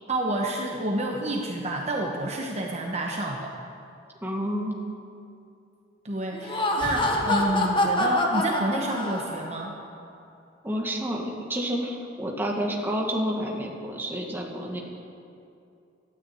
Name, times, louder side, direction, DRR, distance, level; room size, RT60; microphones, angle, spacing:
voice 1, 0.1-3.6 6.0-9.7, right 1 dB, 35° right, 0 dB, 1.1 m, -29 dB
voice 2, 4.2-4.8 10.6-14.8, equal, 10° right, -1 dB, 1.7 m, -29 dB
Laughter, 6.3-9.6, left 1 dB, 25° left, 1.3 m, -26 dB
12.5 x 9.5 x 8.8 m, 2.6 s
head